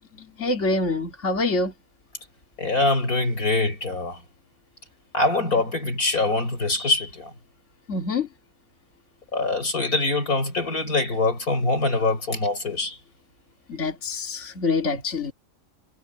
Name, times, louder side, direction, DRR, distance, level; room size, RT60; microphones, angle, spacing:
voice 1, 0.4-1.7 7.9-8.3 13.7-15.3, left 3 dB, 55° left, 2.7 m, -25 dB
voice 2, 2.6-4.2 5.1-7.3 9.3-13.0, left 2 dB, 80° left, 7.4 m, -24 dB
omnidirectional pair, 1.5 m